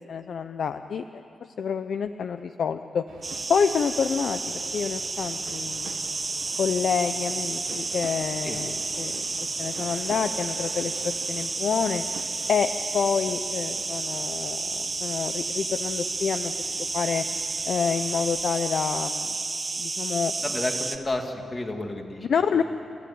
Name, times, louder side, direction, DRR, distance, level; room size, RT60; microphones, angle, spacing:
voice 1, 0.1-1.2 1.6-3.0 3.5-5.9 6.6-9.2 9.6-12.0 12.5-16.5 16.9-17.2 17.7-19.4 19.8-20.3 22.3-22.6, left 6 dB, 60° left, 10 dB, 0.6 m, -28 dB
sound 1, 3.1-18.5, right 6 dB, 90° right, 1.3 m, -46 dB
sound 2, 3.2-21.0, right 3 dB, 25° right, 1.2 m, -31 dB
voice 2, 20.4-22.3 22.5-22.6, left 2 dB, 20° left, 4 dB, 1.9 m, -31 dB
29.5 x 15.0 x 9.5 m, 2.9 s
wide cardioid pair, 170°, 0 cm